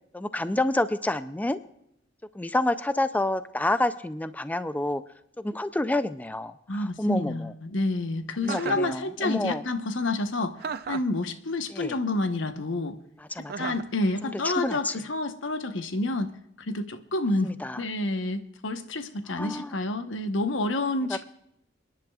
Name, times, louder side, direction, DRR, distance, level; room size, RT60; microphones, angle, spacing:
voice 1, 0.1-1.6 2.3-5.0 5.4-7.5 8.4-9.6 11.7-11.9 13.3-13.7 14.2-14.9 17.4-17.8 19.4-19.7, left 1 dB, 10° left, 12 dB, 0.4 m, -28 dB
voice 2, 6.7-10.6 10.9-13.0 13.6-16.3 16.6-21.2, left 2 dB, 75° left, 9 dB, 1.0 m, -29 dB
Chuckle chortle, 8.4-9.0 10.6-11.2 13.5-13.9, right 6 dB, 55° right, 0.6 m, -34 dB
28.0 x 10.5 x 2.4 m, 0.78 s
head